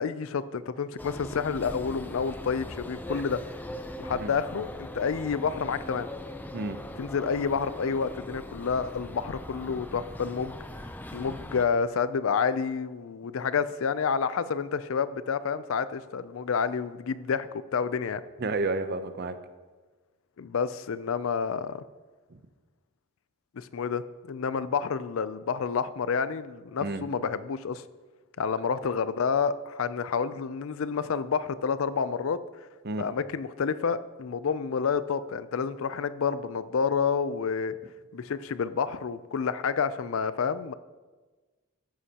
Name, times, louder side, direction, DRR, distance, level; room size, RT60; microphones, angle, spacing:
voice 1, 0.0-3.4 4.0-6.1 7.0-10.6 11.1-18.2 20.4-21.8 23.5-27.8 28.4-32.4 33.0-37.7 38.1-40.7, left 6 dB, 70° left, 15 dB, 0.4 m, -29 dB
sound 1, 1.0-11.6, left 1 dB, 10° left, 0.4 m, -40 dB
voice 2, 18.4-19.4 22.3-22.4 26.8-27.0 32.8-33.0, right 3 dB, 50° right, 10 dB, 0.6 m, -31 dB
13.5 x 9.6 x 2.9 m, 1.3 s
head